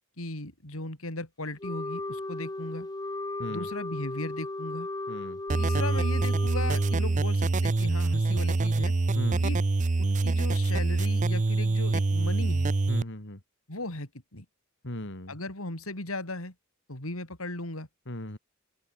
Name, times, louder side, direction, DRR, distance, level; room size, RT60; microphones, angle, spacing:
voice 1, 0.2-2.9 3.5-4.9 5.5-8.9 9.4-9.6 10.0-12.7 13.7-14.5 15.3-16.5 16.9-17.9, left 2 dB, 85° left, 5.4 m, -37 dB
Wind instrument woodwind instrument, 1.6-7.2, left 2 dB, 20° left, 0.9 m, -36 dB
voice 2, 5.1-5.4 9.1-9.4 12.9-13.4 14.8-15.4 18.1-18.4, left 1 dB, 60° left, 3.0 m, -37 dB
sound 1, 5.5-13.0, right 3 dB, 35° right, 0.5 m, -25 dB
open air
head